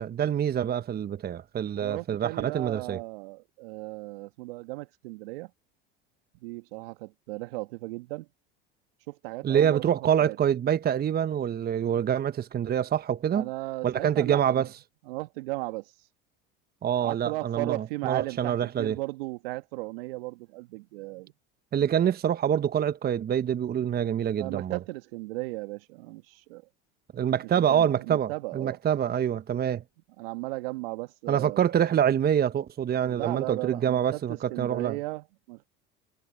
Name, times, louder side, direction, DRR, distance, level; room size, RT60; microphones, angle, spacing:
voice 1, 0.0-3.0 9.4-13.5 13.8-14.7 16.8-18.9 21.7-24.8 27.1-29.8 31.3-35.0, right 9 dB, 30° right, 1.1 m, -26 dB
voice 2, 1.8-5.5 6.4-8.3 9.1-10.4 13.3-14.7 15.1-15.9 17.0-21.3 24.4-26.6 27.4-28.8 30.2-31.6 33.0-35.7, right 23 dB, 70° right, 2.0 m, -36 dB
hypercardioid pair, 75°, 30 cm